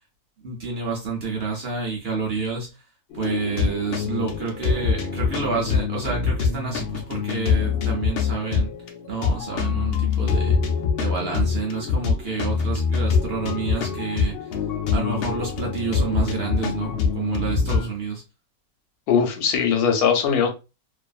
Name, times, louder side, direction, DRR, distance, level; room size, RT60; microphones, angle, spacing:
voice 1, 0.4-2.7 3.1-8.7 9.1-10.6 11.0-14.4 14.9-18.2, right 4 dB, 55° right, 0.7 m, -29 dB
sound 1, 3.1-17.9, left 5 dB, 70° left, 0.5 m, -24 dB
voice 2, 19.1-20.5, left 6 dB, 85° left, 1.2 m, -20 dB
2.6 x 2.4 x 2.3 m
omnidirectional pair, 1.5 m